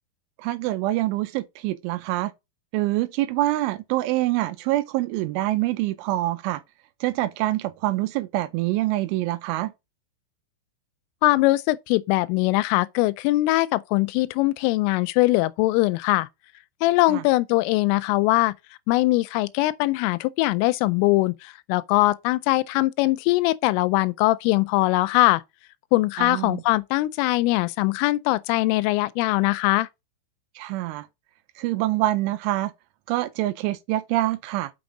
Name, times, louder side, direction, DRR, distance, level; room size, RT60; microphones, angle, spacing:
voice 1, 0.4-2.3 2.7-6.6 7.0-9.7 17.1-17.2 26.2-26.6 30.6-31.1 31.6-32.7 33.1-34.7, right 16 dB, 85° right, 3.1 m, -25 dB
voice 2, 11.2-16.3 16.8-18.5 18.9-25.4 25.9-29.9, left 19 dB, 90° left, 3.1 m, -21 dB
6.4 x 6.2 x 3.9 m
omnidirectional pair, 5.7 m